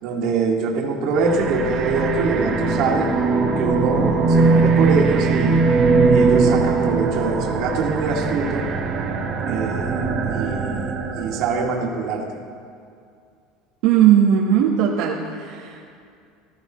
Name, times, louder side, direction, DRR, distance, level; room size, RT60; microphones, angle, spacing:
voice 1, 0.0-3.1 3.6-5.6 6.1-8.6 9.4-10.9 11.2-12.3, right 4 dB, 55° right, 0 dB, 2.0 m, -24 dB
sound 1, 1.1-11.7, right 4 dB, 35° right, 1.6 m, -20 dB
voice 2, 13.8-15.8, right 9 dB, 70° right, -3 dB, 1.2 m, -17 dB
19.5 x 13.5 x 3.1 m, 2.3 s
cardioid pair, 150°, 0 cm